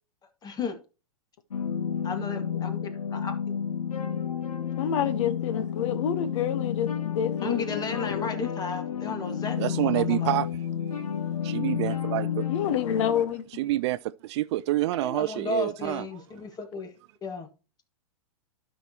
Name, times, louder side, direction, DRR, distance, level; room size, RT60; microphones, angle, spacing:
voice 1, 0.4-0.8 2.0-2.8 3.1-3.4 7.4-10.4 15.0-16.9 17.2-17.5, left 4 dB, 20° left, 1.7 m, -33 dB
sound 1, 1.5-13.2, left 8 dB, 85° left, 1.2 m, -31 dB
voice 2, 4.8-8.3 12.5-13.4, left 9 dB, 55° left, 1.0 m, -28 dB
voice 3, 9.6-10.5 11.4-12.4 13.6-16.2, right 16 dB, 50° right, 0.4 m, -28 dB
12.0 x 6.2 x 2.8 m
hypercardioid pair, 115°, 19 cm